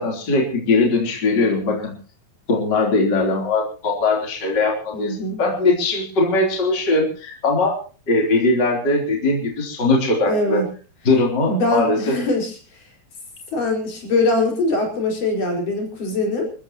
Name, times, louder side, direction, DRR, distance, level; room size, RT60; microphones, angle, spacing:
voice 1, 0.0-2.0 2.5-7.8 8.1-10.6 11.1-12.1, left 2 dB, 30° left, 0 dB, 4.0 m, -20 dB
voice 2, 4.9-5.4 10.3-10.7 11.5-12.6 13.5-16.5, left 2 dB, 65° left, 1 dB, 6.5 m, -22 dB
28.5 x 14.5 x 3.0 m, 0.37 s
omnidirectional pair, 4.0 m